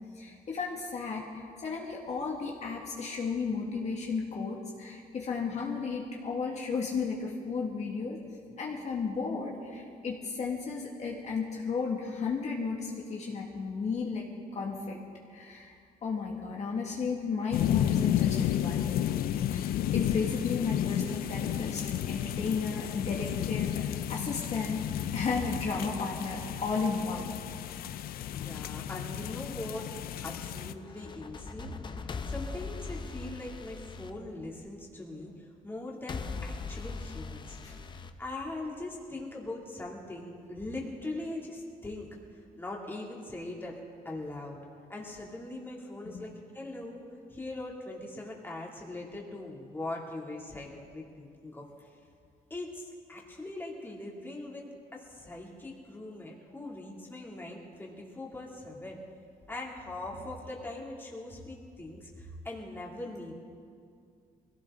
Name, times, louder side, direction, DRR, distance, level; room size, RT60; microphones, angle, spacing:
voice 1, 0.2-8.2 8.6-14.2 14.5-15.0 15.3-15.7 16.0-24.8 25.1-27.3 37.6-37.7 46.0-46.3, left 4 dB, 50° left, -2 dB, 1.9 m, -34 dB
sound 1, 17.5-30.7, left 11 dB, 85° left, 0.5 m, -32 dB
voice 2, 28.3-29.9 30.2-37.9 38.2-43.8 44.0-44.6 44.9-47.0 47.3-51.6 52.5-54.6 54.9-59.0 59.5-63.3, left 2 dB, 15° left, -3 dB, 2.7 m, -41 dB
sound 2, 30.8-34.9 36.1-38.9, left 4 dB, 30° left, 0.7 m, -40 dB
21.5 x 16.5 x 3.8 m, 2.3 s
cardioid pair, 115°, 15 cm